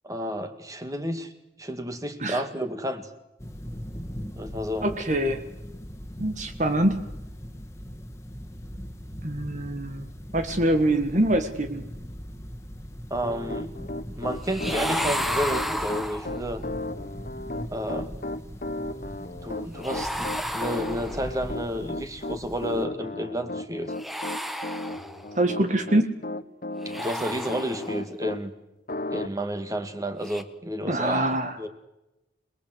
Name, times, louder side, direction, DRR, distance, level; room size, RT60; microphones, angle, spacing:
voice 1, 0.0-1.3 1.6-3.1 4.4-4.9 13.1-16.6 17.7-18.1 19.2-23.9 27.0-28.5 29.1-31.2 31.6-31.7, equal, 20° right, 8 dB, 2.2 m, -31 dB
sound 1, 3.4-22.9, equal, 15° left, 2.2 m, -40 dB
voice 2, 4.8-5.4 6.2-7.0 9.2-10.0 10.3-11.8 25.4-26.1 30.9-31.5, right 1 dB, 40° right, 7 dB, 1.7 m, -24 dB
Piano, 13.2-28.4 28.9-29.3, left 2 dB, 50° left, 1.2 m, -35 dB
sound 2, 14.4-16.6 19.8-21.5 23.9-25.4 26.8-28.1 30.2-30.4, equal, ahead, 1.3 m, -32 dB
28.0 x 20.0 x 8.0 m, 0.94 s
head